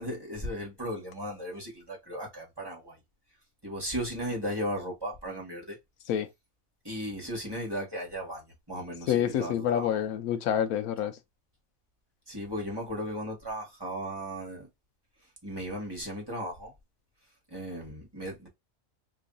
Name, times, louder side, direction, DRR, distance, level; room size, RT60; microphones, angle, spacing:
voice 1, 0.0-3.0 3.6-5.8 6.8-10.0 12.3-14.7 15.2-16.7 17.5-18.5, equal, 20° right, 1.3 m, -36 dB
voice 2, 9.1-11.1, left 9 dB, 90° left, 1.1 m, -27 dB
3.1 x 2.6 x 3.8 m
omnidirectional pair, 1.5 m